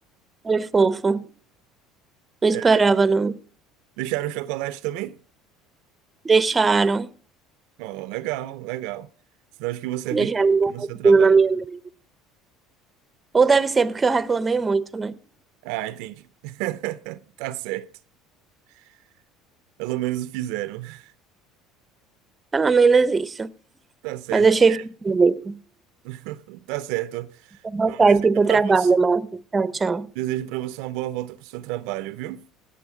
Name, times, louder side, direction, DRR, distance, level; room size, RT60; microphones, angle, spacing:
voice 1, 0.4-1.3 2.4-3.4 6.2-7.1 10.1-11.8 13.3-15.1 22.5-23.5 24.3-25.6 27.6-30.1, right 4 dB, 20° right, 0.6 m, -19 dB
voice 2, 2.5-2.8 4.0-5.2 7.8-9.1 9.6-11.3 15.6-17.9 18.7-18.9 19.8-21.1 24.0-24.8 26.0-27.6 27.9-28.2 28.5-28.9 30.1-32.4, right 16 dB, 75° right, 0.5 m, -31 dB
17.5 x 6.9 x 4.8 m
supercardioid pair, 105°, 0 cm